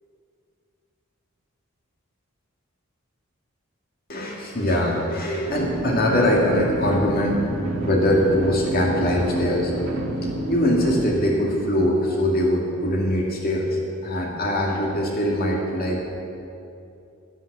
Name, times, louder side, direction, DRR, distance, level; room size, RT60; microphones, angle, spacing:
voice 1, 4.1-7.4 7.8-9.7 10.5-16.0, left 1 dB, 45° left, -1 dB, 2.1 m, -22 dB
sound 1, 5.5-11.1, right 1 dB, 70° right, 1.9 m, -28 dB
12.0 x 11.0 x 7.9 m, 2.6 s
head